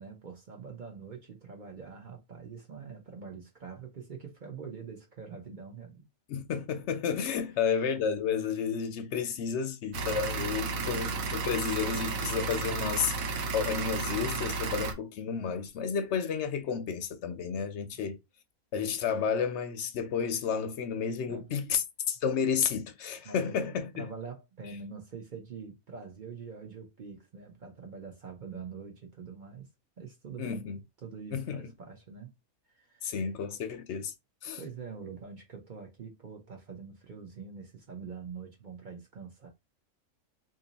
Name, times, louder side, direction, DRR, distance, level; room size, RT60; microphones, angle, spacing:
voice 1, 0.0-6.1 10.6-11.1 17.9-18.0 21.3-21.5 23.2-29.7 30.0-30.7 31.0-32.3 32.7-33.1 34.6-39.5, right 5 dB, 45° right, 0.7 m, -44 dB
voice 2, 6.3-18.2 18.7-24.1 30.4-30.8 31.3-31.7 33.0-34.1 34.4-34.6, left 7 dB, 65° left, 0.7 m, -31 dB
sound 1, 9.9-14.9, right 4 dB, 75° right, 1.1 m, -33 dB
2.7 x 2.6 x 3.9 m
omnidirectional pair, 1.5 m